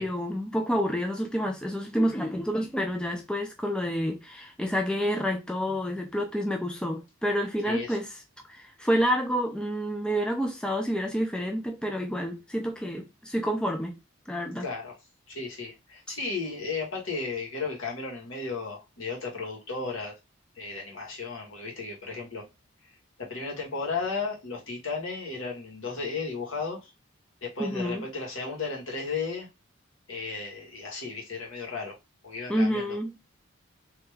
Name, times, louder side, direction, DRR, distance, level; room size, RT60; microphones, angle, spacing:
voice 1, 0.0-8.2 8.5-13.9 14.3-14.7 16.1-16.2 27.6-28.1 32.5-33.2, equal, 5° left, 0.4 m, -29 dB
voice 2, 7.6-8.0 14.6-15.0 15.3-20.2 20.5-22.4 23.2-26.9 27.4-29.5 30.1-32.0 32.2-33.0, left 4 dB, 70° left, 1.5 m, -34 dB
3.3 x 2.8 x 3.3 m
head